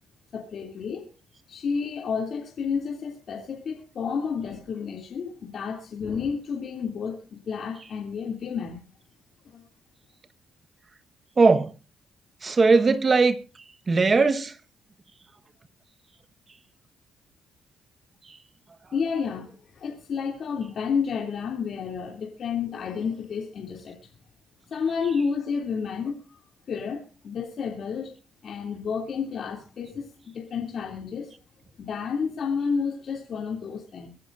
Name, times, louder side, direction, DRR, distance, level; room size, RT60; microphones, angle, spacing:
voice 1, 0.3-1.1 1.5-8.8 9.4-9.6 18.9-24.0 24.7-26.4 26.7-28.1 28.4-30.1 30.3-31.3 31.8-34.1, left 6 dB, 60° left, 2.9 m, -30 dB
voice 2, 11.4-11.7 12.4-13.4 13.9-14.5, right 4 dB, 35° right, 1.3 m, -19 dB
24.0 x 10.5 x 2.6 m
cardioid pair, 90°, 0 cm